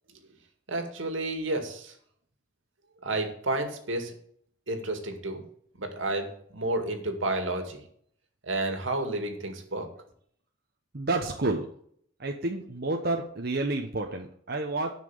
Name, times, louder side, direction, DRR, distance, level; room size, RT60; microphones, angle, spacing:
voice 1, 0.7-1.9 3.0-4.1 4.7-5.4 5.8-7.8 8.4-9.9, right 2 dB, 80° right, 5 dB, 2.2 m, -31 dB
voice 2, 10.9-11.7 12.2-14.9, right 2 dB, 55° right, 2 dB, 1.1 m, -29 dB
11.0 x 6.0 x 7.1 m, 0.63 s
head